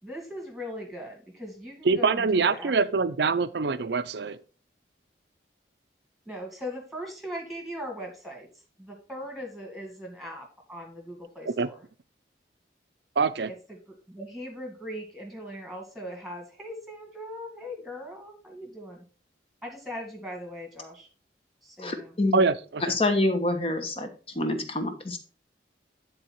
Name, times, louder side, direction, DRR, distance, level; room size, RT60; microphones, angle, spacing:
voice 1, 0.0-3.4 6.3-8.5 8.8-11.9 13.5-19.1 19.6-21.1 21.6-22.2, equal, ahead, 2 dB, 1.9 m, -40 dB
voice 2, 1.8-4.4 11.6-11.7 13.2-13.5 22.3-22.8, right 4 dB, 70° right, 14 dB, 0.5 m, -24 dB
voice 3, 21.8-22.4 22.8-24.1 24.3-25.2, left 2 dB, 30° left, 6 dB, 1.1 m, -26 dB
9.6 x 4.0 x 4.4 m, 0.37 s
head